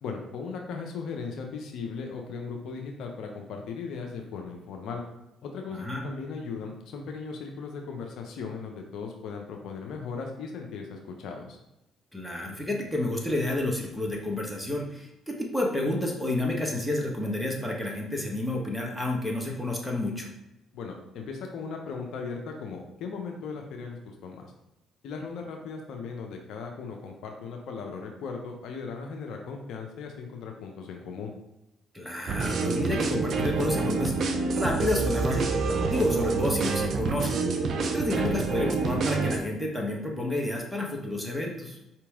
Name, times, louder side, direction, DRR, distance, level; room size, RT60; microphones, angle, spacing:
voice 1, 0.0-5.0 5.4-11.6 20.7-24.5 25.0-31.3, left 5 dB, 75° left, 2 dB, 0.6 m, -37 dB
voice 2, 5.7-6.0 12.1-20.3 31.9-34.1 34.5-35.5 35.9-37.3 37.8-41.8, left 1 dB, ahead, -2 dB, 1.3 m, -30 dB
sound 1, 32.3-39.4, right 4 dB, 60° right, 0.5 m, -27 dB
5.0 x 2.9 x 3.5 m, 0.88 s
supercardioid pair, 65°, 0 cm